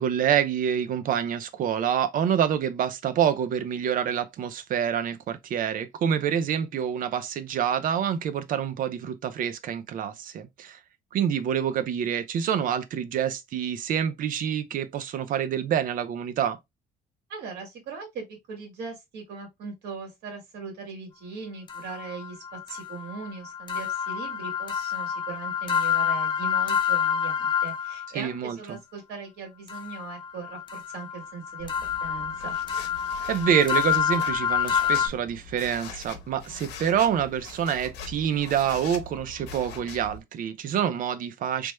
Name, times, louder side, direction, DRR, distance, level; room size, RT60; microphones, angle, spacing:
voice 1, 0.0-10.8 11.1-16.6 28.1-28.8 33.3-41.7, right 9 dB, 55° right, 0.5 m, -27 dB
voice 2, 17.3-31.7 32.0-32.6, right 4 dB, 80° right, 1.8 m, -39 dB
sound 1, 21.7-28.1 29.7-35.1, left 8 dB, 30° left, 0.6 m, -28 dB
sound 2, 31.6-40.2, left 5 dB, 85° left, 0.9 m, -43 dB
3.3 x 2.1 x 3.1 m
cardioid pair, 110°, 17 cm